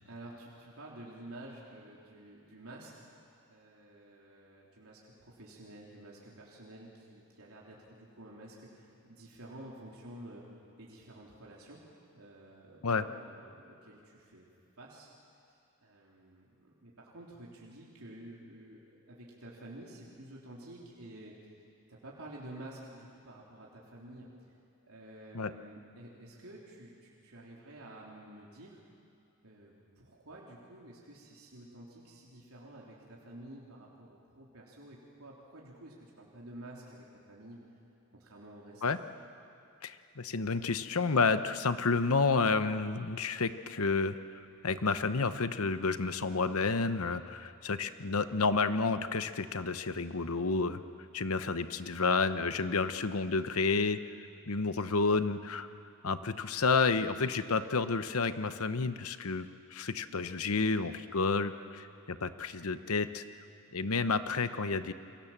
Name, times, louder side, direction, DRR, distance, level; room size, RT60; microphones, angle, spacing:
voice 1, 0.0-2.9 3.5-10.4 10.8-11.8 12.1-14.5 14.8-15.1 15.8-21.3 21.9-24.3 24.9-28.8 29.4-37.6 38.1-38.8, right 1 dB, 80° right, -4 dB, 3.6 m, -50 dB
voice 2, 39.8-44.2 44.6-50.8 51.1-54.0 54.5-55.7 56.0-59.5 59.7-63.2 63.7-64.9, left 4 dB, 80° left, 11 dB, 1.0 m, -30 dB
29.0 x 23.5 x 7.4 m, 2.6 s
head